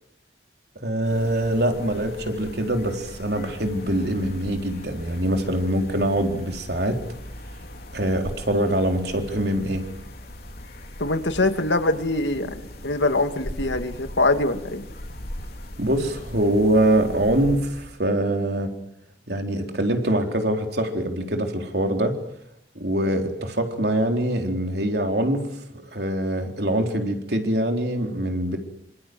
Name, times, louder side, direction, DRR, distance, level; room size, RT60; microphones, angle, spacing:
voice 1, 0.8-7.0 7.9-9.8 15.8-18.7 19.3-22.2 22.8-25.5 25.7-28.6, right 1 dB, 60° right, 4 dB, 4.0 m, -24 dB
sound 1, 1.0-18.0, left 1 dB, 55° left, 4.4 m, -39 dB
voice 2, 11.0-14.8, left 2 dB, 80° left, 7 dB, 2.4 m, -23 dB
27.0 x 26.0 x 7.9 m, 0.77 s
head